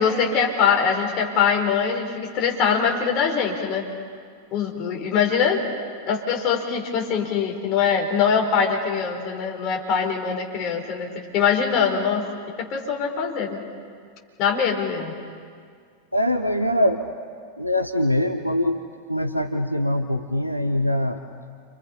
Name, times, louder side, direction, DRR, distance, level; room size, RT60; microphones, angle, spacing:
voice 1, 0.0-3.8 4.5-5.6 6.1-11.1 11.3-12.3 12.7-13.6 14.4-15.1, left 6 dB, 40° left, 0 dB, 4.6 m, -22 dB
voice 2, 16.1-17.0 17.6-18.8 19.1-21.2, left 1 dB, 90° left, 7 dB, 0.9 m, -23 dB
29.5 x 26.5 x 5.8 m, 2.1 s
figure-of-eight pair, 90°, 0 cm